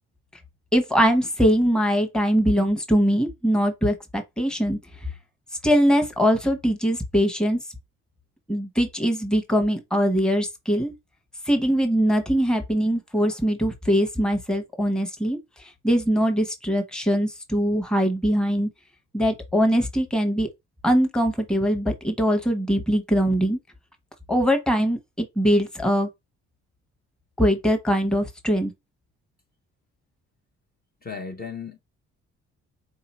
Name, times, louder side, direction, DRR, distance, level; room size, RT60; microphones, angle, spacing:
voice 1, 0.7-4.8 5.6-7.6 8.5-10.9 11.5-15.4 15.8-18.7 19.1-20.5 20.8-23.6 24.3-26.1 27.4-28.7, equal, 5° left, 1.0 m, -22 dB
voice 2, 31.0-31.8, left 5 dB, 30° left, 0.9 m, -35 dB
4.0 x 2.8 x 4.2 m
cardioid pair, 90°, 30 cm